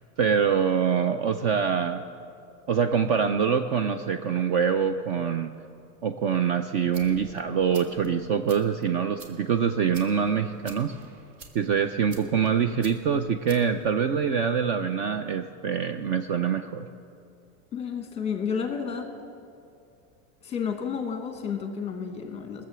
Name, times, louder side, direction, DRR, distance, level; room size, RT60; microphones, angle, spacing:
voice 1, 0.2-2.0 2.7-5.5 6.0-10.9 11.5-16.9, right 7 dB, 40° right, 9 dB, 0.4 m, -25 dB
sound 1, 6.7-14.7, right 4 dB, 60° right, 1.8 m, -51 dB
voice 2, 17.7-19.1 20.4-22.7, left 6 dB, 15° left, 5 dB, 1.1 m, -31 dB
19.5 x 7.5 x 6.8 m, 2.5 s
supercardioid pair, 165°, 42 cm